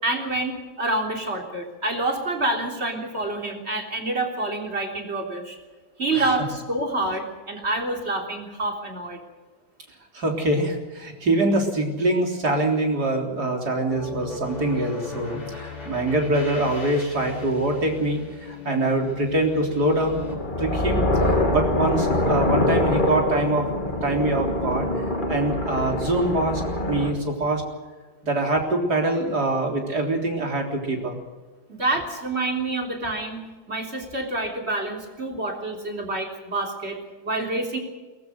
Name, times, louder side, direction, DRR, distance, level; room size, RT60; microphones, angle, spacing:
voice 1, 0.0-5.6 6.0-9.2 31.7-37.0 37.2-37.8, right 2 dB, 30° right, 2 dB, 3.7 m, -27 dB
voice 2, 10.1-20.2 20.6-23.7 24.0-24.9 25.3-26.6 26.9-27.6 28.2-31.2, right 2 dB, 55° right, 2 dB, 4.1 m, -24 dB
sound 1, 13.9-20.4, left 5 dB, 85° left, 5.4 m, -38 dB
sound 2, 19.9-27.1, left 1 dB, 25° left, 2.7 m, -24 dB
22.5 x 19.5 x 6.6 m, 1.3 s
omnidirectional pair, 2.1 m